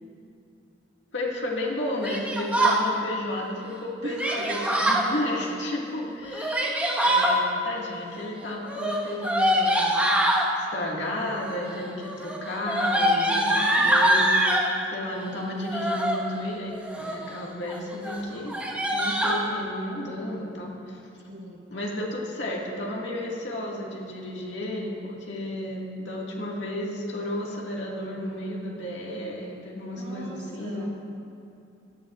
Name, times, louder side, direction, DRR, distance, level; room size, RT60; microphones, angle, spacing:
voice 1, 1.1-10.0 10.6-14.3 14.9-18.5 18.9-21.0 21.7-30.9, left 1 dB, 70° left, -3 dB, 2.1 m, -33 dB
Yell, 2.0-2.8 4.2-5.1 6.2-7.3 8.6-10.4 11.3-11.7 12.0-14.7 15.6-16.2 16.7-17.3 17.6-17.8 18.0-18.2 18.5-19.4, right 1 dB, 10° right, 1.4 m, -24 dB
voice 2, 4.0-5.5 11.8-11.9 13.2-13.9 21.3-21.6 29.9-30.9, right 1 dB, 80° right, -3 dB, 2.2 m, -39 dB
18.0 x 13.0 x 2.5 m, 2.6 s
head